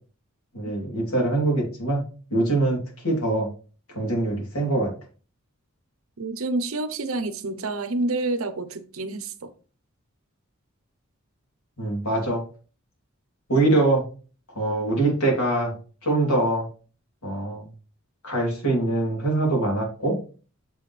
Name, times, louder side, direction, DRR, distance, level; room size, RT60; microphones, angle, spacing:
voice 1, 0.5-2.0 2.3-3.5 3.9-4.9 11.8-12.4 13.5-14.0 14.5-15.7 16.0-16.7 17.2-17.7 18.2-20.2, right 2 dB, 80° left, 3.1 m, -23 dB
voice 2, 6.2-9.5, right 2 dB, 75° right, 0.8 m, -28 dB
7.1 x 5.5 x 3.3 m
head